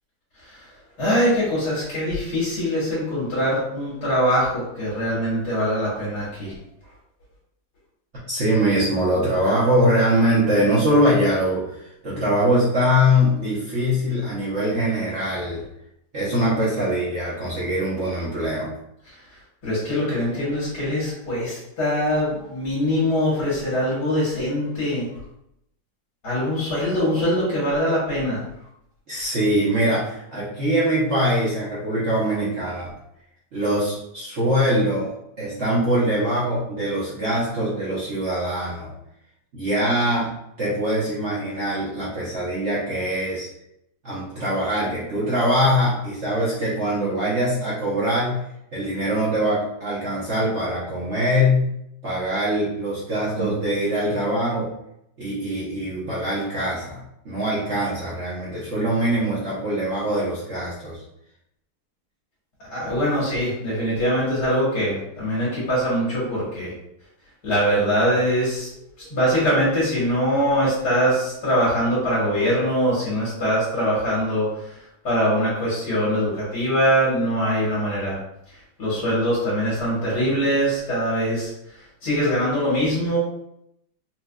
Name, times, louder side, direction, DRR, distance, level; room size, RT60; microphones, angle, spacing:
voice 1, 0.4-0.7 1.0-6.6 19.1-25.1 26.2-28.4 62.7-66.7 67.4-78.2 78.5-83.2, equal, 60° left, -8 dB, 2.0 m, -23 dB
voice 2, 8.3-15.6 16.1-18.7 29.1-32.9 33.5-35.1 35.4-38.9 39.5-40.3 40.6-43.5 44.0-48.4 48.7-51.7 52.0-54.7 55.2-61.0, equal, 50° right, -8 dB, 0.9 m, -22 dB
4.4 x 2.5 x 2.3 m, 0.78 s
omnidirectional pair, 2.0 m